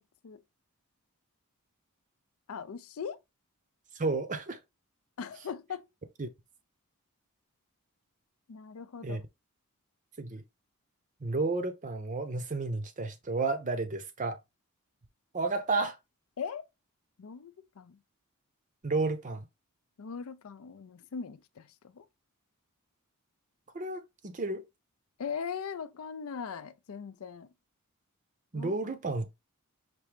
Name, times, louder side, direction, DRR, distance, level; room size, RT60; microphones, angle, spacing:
voice 1, 2.5-3.2 5.2-5.9 8.5-9.2 16.4-16.6 17.2-18.0 20.0-22.1 25.2-27.5 28.5-28.8, left 6 dB, 65° left, 0.4 m, -40 dB
voice 2, 3.9-4.6 6.2-6.3 9.0-9.2 10.2-10.4 11.2-14.4 15.3-16.0 18.8-19.5 23.7-24.6 28.5-29.3, right 3 dB, 35° right, 0.6 m, -32 dB
6.0 x 2.7 x 3.3 m
head